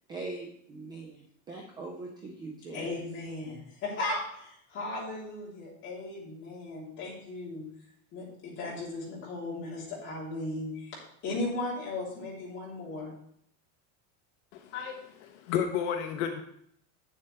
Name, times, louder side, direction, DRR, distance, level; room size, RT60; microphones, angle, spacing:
voice 1, 0.1-3.0, right 3 dB, 15° right, 1 dB, 0.3 m, -41 dB
voice 2, 2.7-7.6 8.1-13.1, left 2 dB, 30° left, -6 dB, 3.2 m, -36 dB
voice 3, 14.5-16.4, left 8 dB, 70° left, 5 dB, 0.9 m, -32 dB
9.0 x 7.4 x 3.3 m, 0.68 s
cardioid pair, 180°, 37 cm